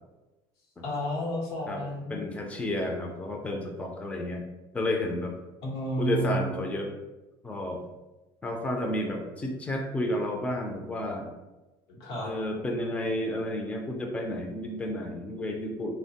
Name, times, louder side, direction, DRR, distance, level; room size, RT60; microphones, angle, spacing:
voice 1, 0.8-2.3 5.6-6.6 11.9-12.3, equal, 90° left, -3 dB, 0.9 m, -31 dB
voice 2, 2.1-4.4 4.7-5.3 6.0-6.9 7.4-7.9 8.4-11.3 12.2-15.9, left 1 dB, 10° left, 1 dB, 0.4 m, -31 dB
3.0 x 2.1 x 2.8 m, 1.1 s
supercardioid pair, 115°, 13 cm